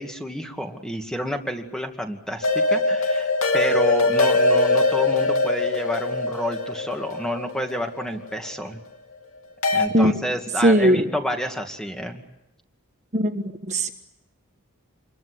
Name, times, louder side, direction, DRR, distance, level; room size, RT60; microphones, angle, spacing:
voice 1, 0.0-8.8 9.7-12.2, equal, 5° left, 4 dB, 2.3 m, -29 dB
sound 1, 2.4-8.5 9.6-9.9, left 3 dB, 65° left, 3.2 m, -22 dB
voice 2, 10.6-11.1 13.1-13.9, right 1 dB, 30° right, 4 dB, 1.4 m, -19 dB
28.0 x 22.5 x 8.0 m, 0.94 s
head